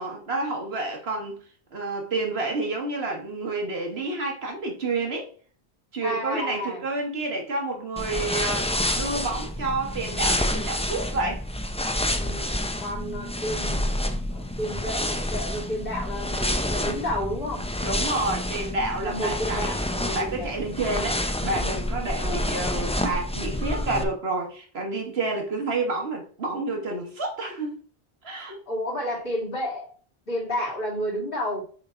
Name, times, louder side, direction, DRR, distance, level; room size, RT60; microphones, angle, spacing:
voice 1, 0.0-1.4 1.7-5.3 5.9-8.7 9.0-11.4 17.8-19.8 20.1-27.8 28.2-28.6, right 2 dB, 75° right, 1.8 m, -29 dB
voice 2, 6.0-6.8 12.2-12.5 12.8-17.6 19.0-20.6 22.2-22.5 28.7-29.9 30.3-31.6, equal, 60° left, 3.0 m, -31 dB
sound 1, 8.0-24.0, left 1 dB, 10° left, 0.4 m, -28 dB
7.0 x 3.7 x 4.5 m
omnidirectional pair, 1.0 m